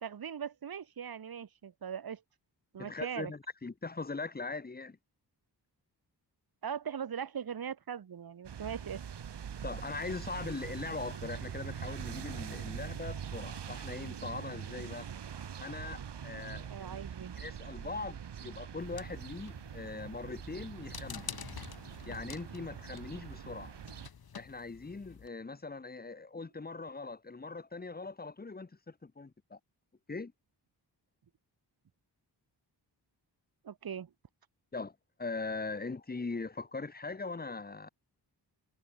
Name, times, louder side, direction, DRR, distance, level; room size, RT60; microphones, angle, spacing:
voice 1, 0.0-2.2 2.7-3.3 6.6-9.0 16.7-17.3 33.6-34.1, right 7 dB, 60° right, 1.9 m, -40 dB
voice 2, 2.8-5.0 9.6-15.1 15.6-17.0 17.4-21.4 22.1-23.7 24.3-29.6 30.1-30.3 34.7-37.9, left 3 dB, 20° left, 1.6 m, -41 dB
sound 1, 8.4-24.1, right 8 dB, 75° right, 3.2 m, -43 dB
sound 2, 18.8-25.3, left 7 dB, 60° left, 5.2 m, -49 dB
wide cardioid pair, 175°, 42 cm